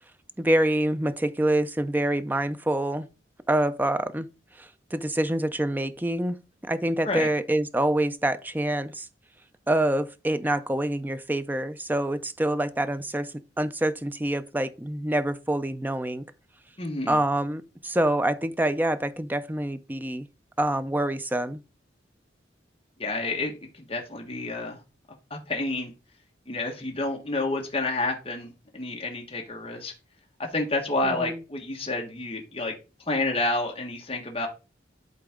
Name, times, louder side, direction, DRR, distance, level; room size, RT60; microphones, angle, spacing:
voice 1, 0.4-3.1 3.5-4.3 4.6-6.4 6.6-9.1 9.7-16.2 17.1-20.3 20.6-21.6 31.0-31.4, right 1 dB, 10° right, 0.5 m, -26 dB
voice 2, 16.8-17.2 23.0-24.8 25.3-25.9 26.5-29.9 30.4-32.7 33.1-34.5, left 2 dB, 30° left, 1.5 m, -29 dB
11.0 x 4.0 x 3.7 m
head